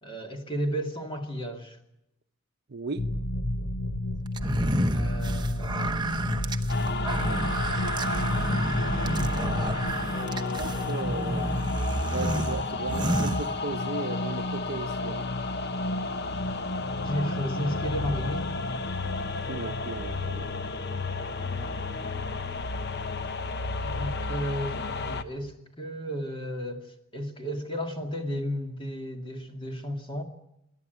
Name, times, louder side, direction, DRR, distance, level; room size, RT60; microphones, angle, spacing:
voice 1, 0.0-1.8 4.9-6.1 10.1-11.6 17.0-18.5 21.3-22.7 23.8-30.2, equal, 25° left, 2.3 m, -34 dB
voice 2, 2.7-3.1 10.6-11.5 12.1-15.3 19.5-20.7, right 3 dB, 50° right, 0.8 m, -36 dB
sound 1, 3.0-9.9, left 1 dB, 80° left, 1.0 m, -30 dB
sound 2, 4.4-14.0, right 2 dB, 20° right, 0.9 m, -31 dB
sound 3, 6.7-25.2, left 3 dB, 50° left, 0.9 m, -32 dB
27.0 x 11.5 x 9.2 m
head